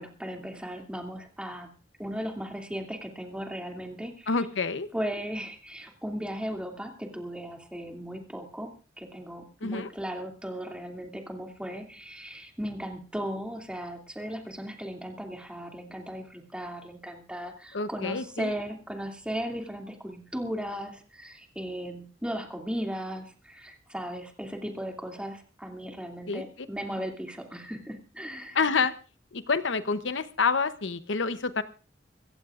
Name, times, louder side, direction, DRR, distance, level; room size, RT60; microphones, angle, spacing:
voice 1, 0.0-1.7 2.0-4.3 4.9-8.7 9.0-28.6, equal, 5° right, 2 dB, 2.5 m, -36 dB
voice 2, 4.3-4.9 9.6-9.9 17.7-18.5 26.3-26.4 28.5-28.9 29.3-31.6, left 4 dB, 80° left, 11 dB, 0.8 m, -28 dB
26.0 x 15.0 x 2.5 m, 0.35 s
head